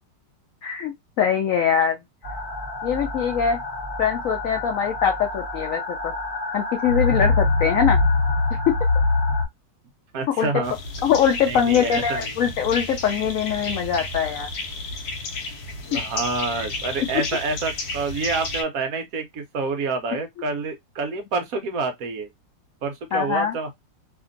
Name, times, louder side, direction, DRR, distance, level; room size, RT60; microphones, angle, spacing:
voice 1, 0.6-2.0 2.8-3.6 4.0-6.1 6.5-8.0 10.4-10.5 11.0-14.5 15.9-16.0 23.1-23.6, left 8 dB, 90° left, 0.7 m, -22 dB
sound 1, 2.2-9.4, left 3 dB, 35° left, 0.9 m, -24 dB
voice 2, 10.1-10.7 11.5-12.3 15.8-22.3 22.8-23.7, right 4 dB, 70° right, 0.8 m, -28 dB
sound 2, 10.6-18.6, left 3 dB, 65° left, 1.0 m, -32 dB
2.8 x 2.5 x 2.4 m
omnidirectional pair, 2.0 m